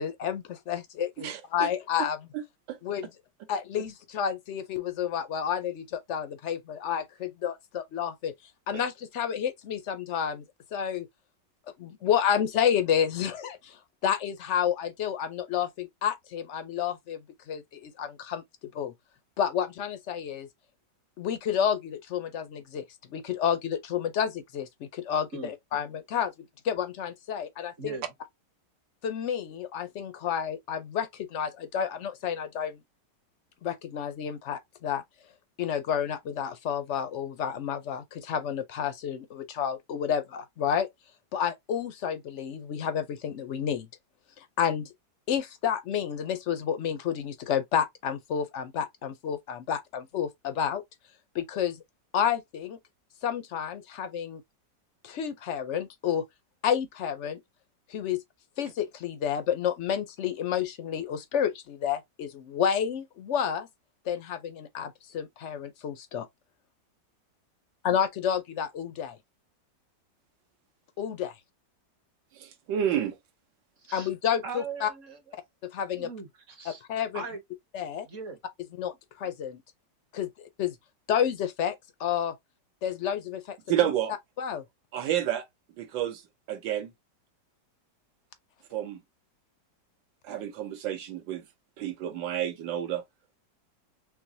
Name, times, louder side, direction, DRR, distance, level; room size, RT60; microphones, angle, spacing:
voice 1, 0.0-2.2 2.8-3.1 3.5-8.3 8.7-10.4 10.7-11.1 11.8-17.2 17.5-18.4 18.7-18.9 19.4-20.5 21.2-22.8 23.1-26.3 26.6-28.0 29.0-32.8 33.6-35.0 35.6-40.9 41.3-43.9 44.4-44.9 45.3-50.8 51.3-51.8 52.1-52.8 53.2-54.4 55.0-56.2 56.6-57.4 57.9-58.2 58.6-63.7 64.1-66.3 67.8-69.2 71.0-71.3 73.9-74.9 75.6-76.1 76.9-77.2 77.7-78.1 78.8-79.6 80.1-80.3 80.6-80.7 81.1-82.3 82.8-83.6 84.4-84.6, left 8 dB, 75° left, 0.6 m, -30 dB
voice 2, 1.2-1.7 2.3-2.4 2.7-2.8 72.3-73.2 83.7-84.1 84.9-85.4 85.8-86.2 86.5-86.9 88.7-89.0 90.2-91.4 91.8-93.0, right 11 dB, 85° right, 1.6 m, -30 dB
voice 3, 74.4-75.2 76.0-76.8 77.1-77.4 78.1-78.4, right 4 dB, 45° right, 1.4 m, -39 dB
6.1 x 2.1 x 2.6 m
omnidirectional pair, 1.9 m